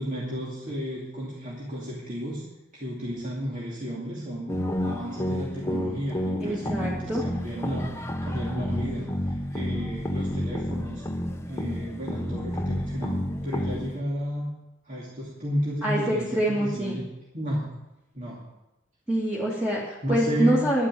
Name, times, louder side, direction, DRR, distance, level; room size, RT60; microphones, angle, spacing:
voice 1, 0.0-2.5 2.7-11.0 11.5-14.5 14.8-17.1 17.3-17.6 18.1-18.4 20.0-20.7, equal, 40° right, -5 dB, 2.7 m, -33 dB
sound 1, 4.5-14.0, equal, 15° left, 0.9 m, -30 dB
voice 2, 6.4-7.2 15.8-17.0 19.1-20.9, right 1 dB, 5° right, -7 dB, 2.6 m, -25 dB
11.5 x 9.8 x 7.9 m, 0.96 s
head